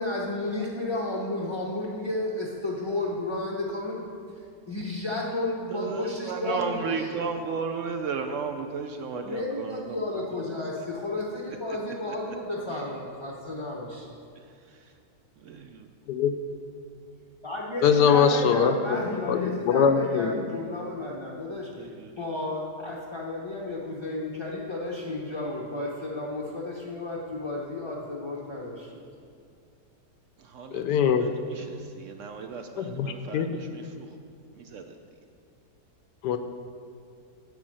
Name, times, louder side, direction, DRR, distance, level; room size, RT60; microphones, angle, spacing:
voice 1, 0.0-4.1 4.7-6.8 7.1-7.2 9.2-14.1 17.4-21.7 22.2-29.0, left 2 dB, 25° left, -5 dB, 0.6 m, -32 dB
voice 2, 5.7-10.5 10.8-10.9 11.7-11.8 12.0-12.2 14.4-14.9 15.5-15.7 17.9-18.3 21.7-22.1 30.4-34.2 34.5-35.0, right 5 dB, 65° right, 6 dB, 0.7 m, -35 dB
voice 3, 17.8-20.4 30.7-31.3 32.8-33.5 36.2-36.4, left 7 dB, 80° left, 8 dB, 1.2 m, -23 dB
9.6 x 5.5 x 7.6 m, 2.4 s
omnidirectional pair, 1.8 m